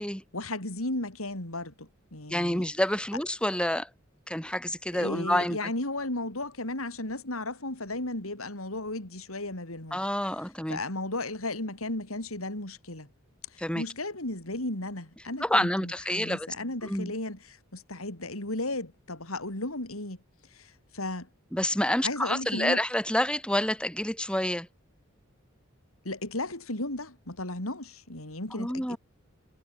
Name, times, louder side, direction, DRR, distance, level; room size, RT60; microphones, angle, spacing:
voice 1, 0.3-2.7 4.9-10.0 10.7-13.1 13.5-20.2 20.5-21.3 22.0-22.8 26.0-29.0, left 2 dB, 85° left, 5.6 m, -35 dB
voice 2, 2.3-3.9 4.3-5.7 9.9-10.8 13.6-13.8 15.4-16.5 16.8-17.1 21.5-24.7 28.5-29.0, left 1 dB, 5° left, 6.2 m, -28 dB
head